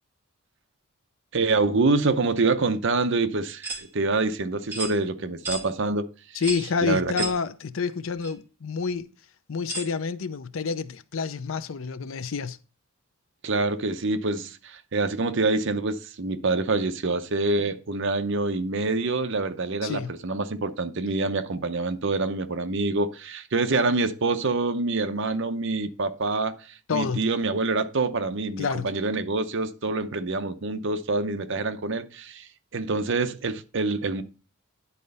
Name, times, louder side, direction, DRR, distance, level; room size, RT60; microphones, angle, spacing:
voice 1, 1.3-6.0 6.3-6.4 6.8-7.1 13.4-26.5 26.9-34.2, right 3 dB, 55° right, 0.7 m, -26 dB
sound 1, 3.6-3.8 4.7-4.9 5.4-5.6 6.4-6.7 7.2-7.4 8.2-8.3 9.7-9.9, right 2 dB, 10° right, 2.3 m, -32 dB
voice 2, 6.3-9.1 9.5-12.6 19.8-20.1 26.9-27.2 28.6-28.9, left 5 dB, 65° left, 0.5 m, -28 dB
10.0 x 4.2 x 5.4 m
head